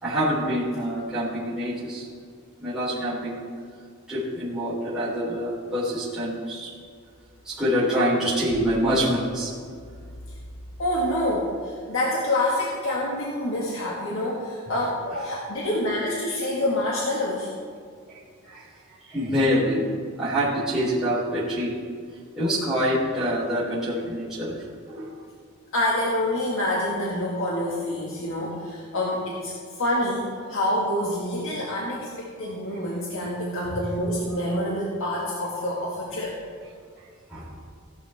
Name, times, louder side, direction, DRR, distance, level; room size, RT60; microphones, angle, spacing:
voice 1, 0.0-2.0 2.6-3.5 4.1-6.7 7.4-9.5 18.4-18.6 19.1-19.9 20.2-21.7 22.4-24.5 24.9-25.1 30.4-30.5 37.3-37.5, equal, 5° right, -11 dB, 3.6 m, -25 dB
voice 2, 10.8-17.5 25.7-36.4, left 1 dB, 60° left, -4 dB, 1.8 m, -27 dB
16.0 x 11.5 x 3.5 m, 2.1 s
head